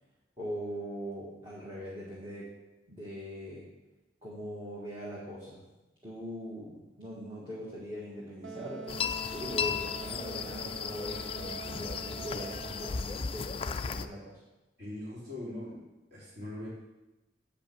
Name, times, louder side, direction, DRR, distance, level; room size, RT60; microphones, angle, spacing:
voice 1, 0.4-2.5 2.9-3.6 4.2-5.6 6.0-14.3, equal, 25° right, -7 dB, 2.0 m, -41 dB
Wind instrument woodwind instrument, 8.4-13.1, right 3 dB, 75° right, 0.7 m, -45 dB
sound 1, 8.9-14.1, left 6 dB, 30° left, 0.3 m, -35 dB
voice 2, 14.8-15.8 16.1-16.7, left 1 dB, 55° right, -8 dB, 3.8 m, -41 dB
8.7 x 5.6 x 6.9 m, 1.0 s
head